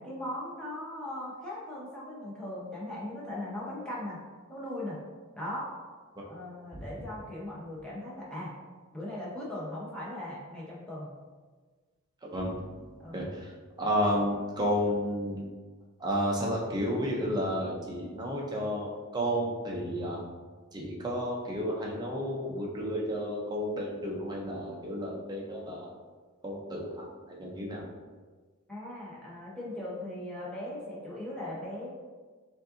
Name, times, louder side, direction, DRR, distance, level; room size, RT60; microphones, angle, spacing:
voice 1, 0.0-4.2 4.5-5.0 5.3-5.7 6.3-8.5 8.9-11.1 13.0-13.2 28.7-31.9, left 1 dB, 5° left, -7 dB, 0.9 m, -39 dB
voice 2, 12.3-13.5 13.8-15.4 16.0-20.2 20.7-25.9 26.4-27.8, equal, 20° right, -3 dB, 0.6 m, -32 dB
5.2 x 2.6 x 2.7 m, 1.4 s
head